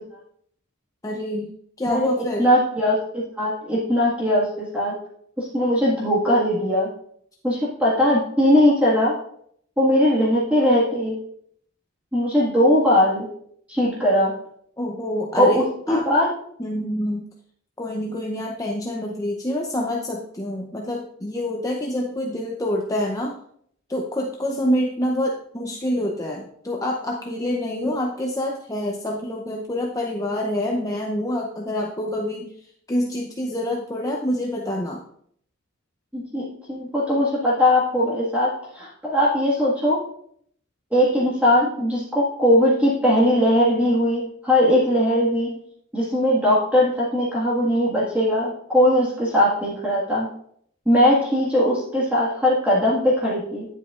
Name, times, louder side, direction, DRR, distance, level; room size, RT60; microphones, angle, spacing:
voice 1, 1.0-1.5 1.8-2.5 14.8-16.1 16.6-17.2 17.8-23.3 23.9-35.0, left 1 dB, 15° left, -1 dB, 0.6 m, -27 dB
voice 2, 2.4-4.9 5.4-6.9 7.4-9.2 9.8-11.1 12.1-13.2 13.7-14.3 15.4-16.3 36.1-40.0 40.9-45.5 45.9-50.3 50.8-53.7, left 1 dB, 5° right, -7 dB, 1.6 m, -20 dB
9.9 x 8.1 x 2.4 m, 0.65 s
head